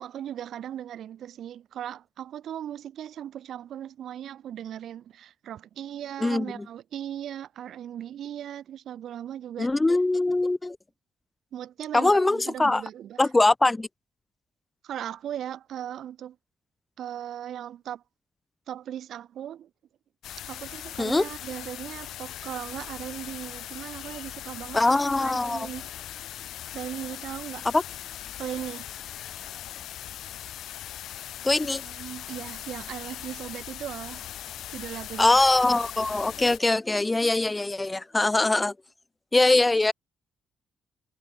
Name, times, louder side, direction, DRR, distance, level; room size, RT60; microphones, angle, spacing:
voice 1, 0.0-9.7 11.5-13.3 14.8-16.4 17.0-18.0 18.7-19.7 20.5-25.9 26.7-27.7 28.4-28.8 31.8-34.3 34.7-35.4, right 10 dB, 70° right, 2.2 m, -38 dB
voice 2, 9.6-10.8 11.9-12.8 13.2-13.9 21.0-21.2 24.7-25.7 27.7-27.8 31.4-31.8 35.2-38.7 39.3-39.9, left 2 dB, 15° left, 0.5 m, -22 dB
sound 1, 20.2-36.6, left 12 dB, 75° left, 1.7 m, -40 dB
cardioid pair, 90°, 0 cm